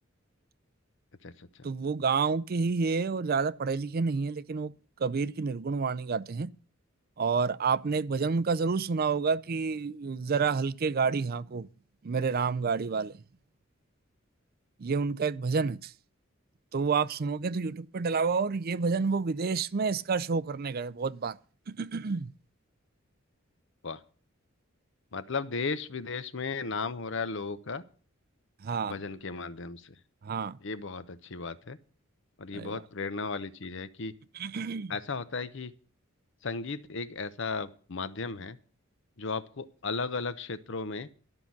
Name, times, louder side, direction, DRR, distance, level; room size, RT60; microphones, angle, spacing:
voice 1, 1.6-4.7 5.0-6.5 7.2-11.7 12.0-13.2 14.8-15.9 16.7-21.4 21.7-22.3 28.6-29.0 30.2-30.6 32.5-32.8 34.3-34.9, right 5 dB, 50° right, 0.5 m, -29 dB
voice 2, 25.1-27.8 28.9-29.9 30.6-31.8 32.4-34.1 34.9-35.7 36.4-38.6 39.2-41.1, left 4 dB, 65° left, 0.9 m, -35 dB
12.5 x 5.9 x 9.4 m
head